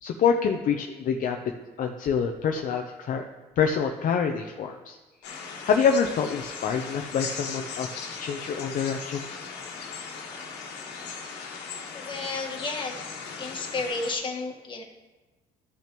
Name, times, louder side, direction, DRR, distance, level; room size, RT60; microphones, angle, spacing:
voice 1, 0.0-1.4 1.8-3.2 3.6-5.0 5.6-9.2, left 6 dB, 55° left, 3 dB, 0.6 m, -26 dB
sound 1, 5.2-14.1, left 5 dB, 85° left, 1.5 m, -38 dB
voice 2, 11.9-13.0 13.4-14.8, left 3 dB, 30° left, 2 dB, 1.5 m, -32 dB
14.0 x 5.8 x 3.0 m, 1.2 s
cardioid pair, 110°, 17 cm